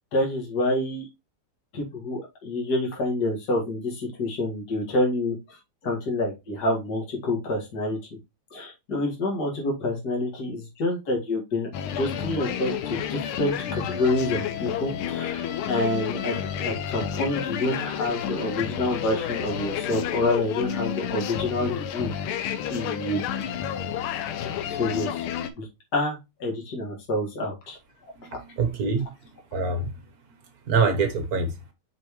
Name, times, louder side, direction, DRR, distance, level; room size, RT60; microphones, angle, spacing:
voice 1, 0.1-1.1 1.7-8.0 8.5-11.7 11.9-22.1 22.7-23.2 24.7-25.3 25.6-25.7 25.9-27.8 28.3-28.4, left 1 dB, 50° left, 2.5 m, -28 dB
sound 1, 11.7-25.5, left 8 dB, 85° left, 1.6 m, -30 dB
voice 2, 28.2-29.1 29.5-29.9 30.7-31.5, right 4 dB, 55° right, 1.3 m, -25 dB
6.0 x 5.3 x 3.1 m
omnidirectional pair, 2.3 m